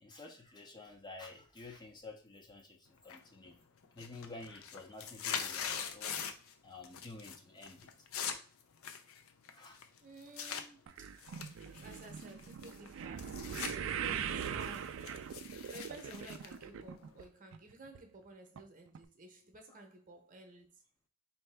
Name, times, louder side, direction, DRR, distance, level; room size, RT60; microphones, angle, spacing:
voice 1, 0.0-3.6 3.9-6.3 6.6-7.9 9.5-9.8, left 3 dB, 20° left, 0.5 m, -51 dB
sound 1, 3.1-3.5 3.8-6.5 6.8-7.4 7.6-10.6 11.2-13.7 14.1-17.3, left 7 dB, 75° left, 0.5 m, -42 dB
voice 2, 10.0-11.3 11.7-15.1 15.7-20.8, right 2 dB, 40° right, 0.8 m, -53 dB
sound 2, 10.9-17.2 17.5-18.0 18.6-18.7 18.9-19.0, right 8 dB, 65° right, 0.3 m, -41 dB
4.3 x 2.7 x 3.3 m
head